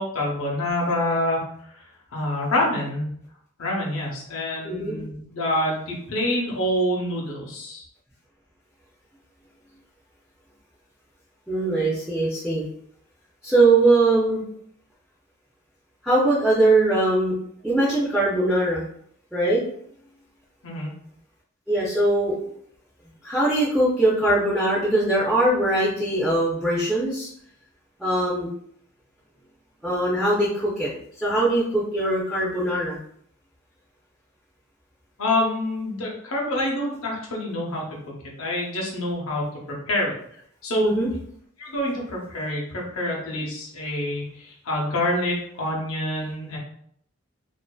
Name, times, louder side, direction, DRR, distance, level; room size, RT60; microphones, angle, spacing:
voice 1, 0.0-1.7 2.1-3.1 3.6-7.8 20.6-20.9 35.2-37.9 38.4-40.1 40.6-40.9 41.6-46.6, left 1 dB, 75° left, -3 dB, 0.8 m, -26 dB
voice 2, 4.6-5.0 11.5-12.6 13.4-14.4 16.0-17.3 17.6-18.9 19.3-19.6 21.7-22.3 23.2-27.3 28.0-28.5 29.8-30.9 31.2-33.0 40.8-41.1, right 2 dB, 5° right, -8 dB, 0.4 m, -21 dB
2.5 x 2.4 x 2.2 m, 0.66 s
head